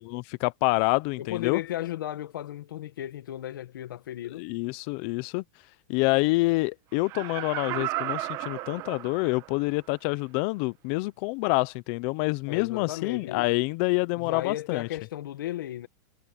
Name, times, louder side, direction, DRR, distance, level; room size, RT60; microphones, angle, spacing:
voice 1, 0.0-1.6 4.4-5.4 5.9-14.9, left 24 dB, 35° left, 0.5 m, -27 dB
voice 2, 1.2-4.4 12.5-13.5 14.2-15.9, left 13 dB, 90° left, 1.7 m, -35 dB
Laughter, 7.0-9.6 10.1-10.2, right 16 dB, 30° right, 1.1 m, -34 dB
supercardioid pair, 170°, 11 cm